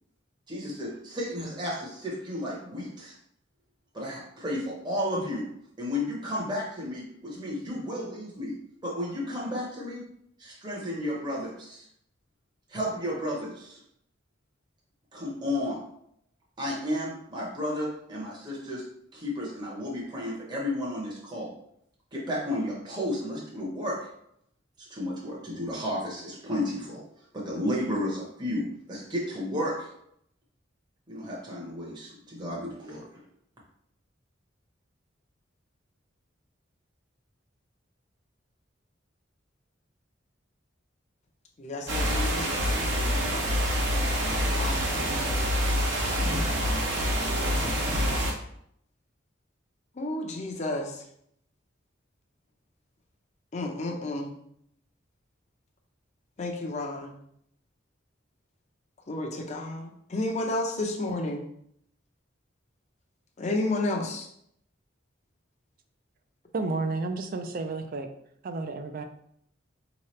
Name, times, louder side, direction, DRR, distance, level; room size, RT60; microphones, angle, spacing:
voice 1, 0.5-3.1 3.9-5.5 5.8-10.1 10.4-11.9 12.7-13.8 15.1-15.9 16.6-18.9 19.1-21.5 22.1-24.1 24.8-27.1 27.3-29.9 31.1-33.1, left 1 dB, 25° right, -4 dB, 0.9 m, -33 dB
voice 2, 41.6-43.3 44.6-45.5 47.2-48.2 50.0-50.9 53.5-54.3 56.4-57.1 59.1-61.4 63.4-64.3, left 2 dB, 40° left, 1 dB, 0.6 m, -32 dB
sound 1, 41.9-48.3, equal, 75° right, 0.9 m, -26 dB
voice 3, 66.5-68.1 68.4-69.0, right 3 dB, 50° right, 7 dB, 0.4 m, -31 dB
4.6 x 3.0 x 3.1 m, 0.70 s
head